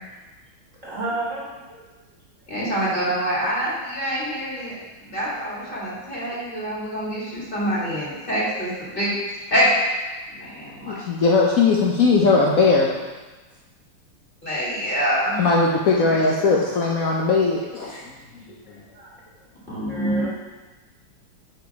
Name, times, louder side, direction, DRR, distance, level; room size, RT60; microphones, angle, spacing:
voice 1, 0.8-1.6 16.0-16.1 18.5-19.2 19.9-20.3, right 2 dB, 40° right, -6 dB, 1.7 m, -32 dB
voice 2, 2.5-4.7 5.0-9.1 9.5-9.7 10.4-10.9 14.4-15.5 16.1-16.5 19.7-20.3, equal, 25° left, -7 dB, 2.1 m, -26 dB
voice 3, 10.8-12.9 15.4-18.0, left 4 dB, 80° left, -2 dB, 0.7 m, -19 dB
7.4 x 5.1 x 4.7 m, 1.2 s
omnidirectional pair, 2.4 m